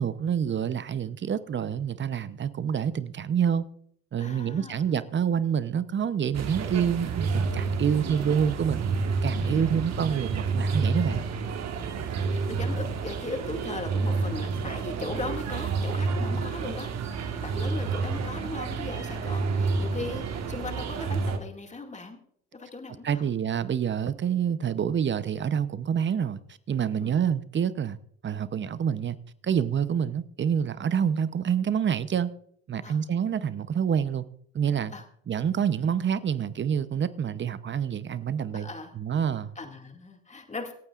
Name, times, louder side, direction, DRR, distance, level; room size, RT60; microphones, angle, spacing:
voice 1, 0.0-3.7 4.1-8.8 9.2-11.2 23.0-26.4 26.7-28.0 28.2-29.2 29.4-32.3 32.7-34.2 34.5-34.9 35.3-38.7 39.0-39.5, right 8 dB, 40° right, 0.8 m, -27 dB
voice 2, 4.2-4.8 7.9-8.3 9.4-9.9 11.7-22.2 22.5-23.2 27.0-27.2 32.8-33.0 34.9-35.0 38.5-39.0 39.6-40.7, left 3 dB, 25° left, 2.2 m, -38 dB
sound 1, 6.3-21.4, right 4 dB, 60° right, 1.6 m, -29 dB
26.0 x 8.9 x 2.5 m
supercardioid pair, 75°, 30 cm